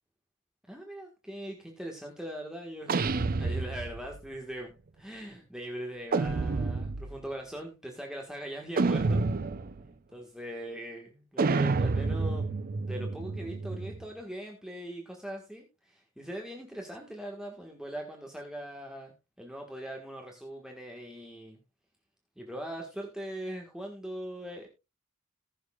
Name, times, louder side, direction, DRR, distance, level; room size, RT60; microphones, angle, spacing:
voice 1, 0.7-3.1 3.4-9.2 9.8-12.5 12.8-19.1 19.4-21.6 22.4-24.7, right 1 dB, 5° right, 1 dB, 1.5 m, -41 dB
sound 1, 2.9-4.2 6.1-7.2 8.8-9.8 11.4-14.1, right 3 dB, 45° right, 0.5 m, -29 dB
19.5 x 6.5 x 2.3 m, 0.25 s
head